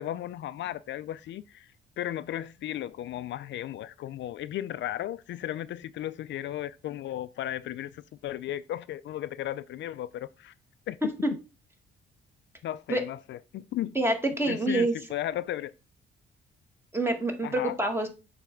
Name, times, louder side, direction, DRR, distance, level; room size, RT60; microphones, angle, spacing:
voice 1, 0.0-1.7 2.0-10.5 10.9-11.1 12.6-14.0 14.5-15.7 17.4-17.7, left 12 dB, 65° left, 0.4 m, -35 dB
voice 2, 14.0-14.9 16.9-18.1, right 1 dB, 10° right, 1.8 m, -26 dB
7.0 x 3.3 x 5.9 m
cardioid pair, 90°, 20 cm